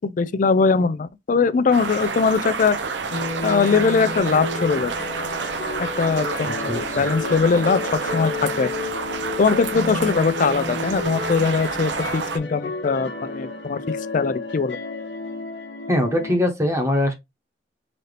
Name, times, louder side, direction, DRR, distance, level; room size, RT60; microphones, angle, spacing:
voice 1, 0.0-2.8 3.4-4.9 5.8-8.7 9.4-14.8, left 5 dB, 50° left, 0.4 m, -21 dB
sound 1, 1.7-12.4, right 4 dB, 80° right, 0.7 m, -29 dB
sound 2, 3.1-16.3, left 3 dB, 80° left, 1.1 m, -31 dB
voice 2, 15.9-17.1, left 1 dB, 15° right, 1.0 m, -21 dB
4.0 x 2.7 x 3.3 m
head